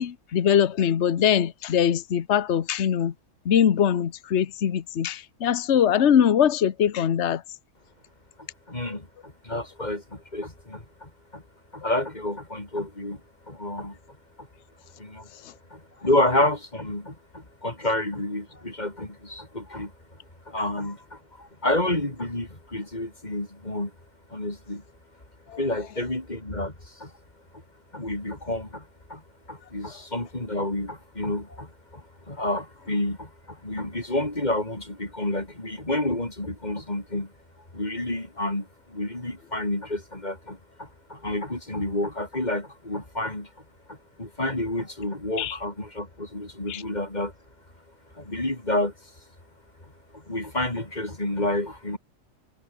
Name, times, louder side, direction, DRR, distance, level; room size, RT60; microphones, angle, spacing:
voice 1, 0.0-3.1 3.4-7.4 8.8-9.0 11.8-11.9 15.4-15.5 25.5-25.6 45.4-45.6 46.7-46.8, left 9 dB, 55° left, 1.3 m, -22 dB
voice 2, 8.7-11.4 11.7-13.2 13.5-14.0 14.4-14.5 15.0-15.3 15.7-19.9 20.5-23.9 24.3-24.8 25.6-27.1 27.9-29.2 29.5-37.3 37.7-43.5 43.9-47.3 48.2-48.9 50.1-52.0, left 1 dB, 30° left, 4.2 m, -29 dB
omnidirectional pair, 1.5 m